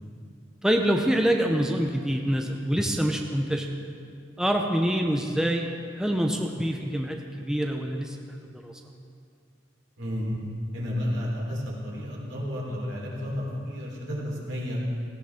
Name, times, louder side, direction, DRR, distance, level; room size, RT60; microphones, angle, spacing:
voice 1, 0.6-3.8 4.4-5.7 5.9-8.2 8.5-8.7, equal, 5° right, 2 dB, 0.7 m, -25 dB
voice 2, 10.0-10.3 10.7-14.8, left 1 dB, 75° right, -4 dB, 3.9 m, -31 dB
17.5 x 16.5 x 3.6 m, 2.3 s
head